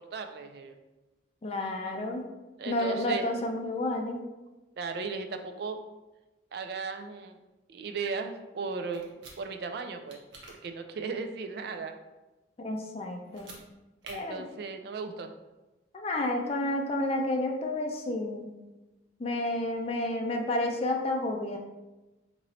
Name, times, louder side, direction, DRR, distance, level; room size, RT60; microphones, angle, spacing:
voice 1, 0.1-0.8 2.6-3.3 4.8-5.8 6.5-7.4 7.7-10.2 10.5-12.0 14.0-15.3, right 4 dB, 55° right, 7 dB, 0.3 m, -36 dB
voice 2, 1.4-2.2 2.7-4.2 12.6-13.5 14.1-14.4 15.9-18.5 19.2-21.6, left 1 dB, 30° left, 2 dB, 0.4 m, -30 dB
sound 1, 8.9-9.4 10.1-10.5 13.2-13.6 14.0-14.1, right 2 dB, 80° right, 0.8 m, -47 dB
3.0 x 2.6 x 4.1 m, 1.1 s
head